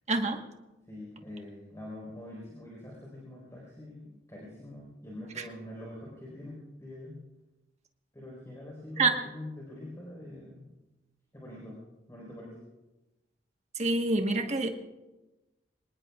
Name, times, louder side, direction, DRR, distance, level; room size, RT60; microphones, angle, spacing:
voice 1, 0.1-0.4 5.4-5.5 9.0-9.2 13.7-14.7, right 3 dB, 35° right, 4 dB, 1.4 m, -26 dB
voice 2, 0.9-7.2 8.1-10.7 11.3-11.8 12.1-12.6, left 1 dB, 15° left, -4 dB, 4.5 m, -44 dB
25.5 x 19.5 x 2.4 m, 1.1 s
head